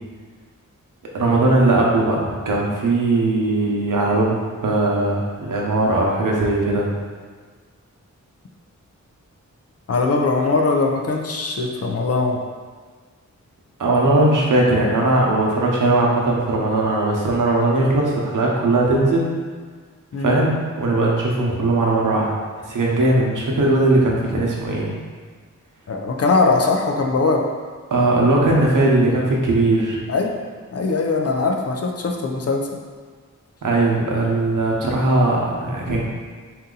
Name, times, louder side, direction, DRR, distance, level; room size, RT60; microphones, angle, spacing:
voice 1, 1.1-6.9 13.8-19.3 20.2-22.3 22.7-24.9 27.9-30.0 33.6-36.0, right 2 dB, 80° right, -3 dB, 0.9 m, -19 dB
voice 2, 9.9-12.4 20.1-20.4 25.9-27.4 30.1-30.3 30.7-32.7, left 3 dB, 50° left, 2 dB, 0.5 m, -20 dB
4.1 x 2.7 x 3.8 m, 1.5 s
wide cardioid pair, 120°, 31 cm